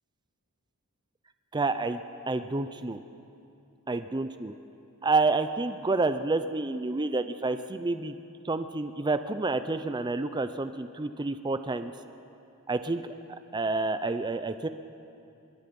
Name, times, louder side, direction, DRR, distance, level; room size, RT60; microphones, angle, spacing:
voice 1, 1.5-2.0 2.3-3.0 3.9-4.5 5.0-8.1 8.4-11.9 12.7-13.1 13.5-14.7, right 3 dB, 20° right, 10 dB, 0.5 m, -29 dB
24.0 x 21.5 x 5.4 m, 2.7 s
head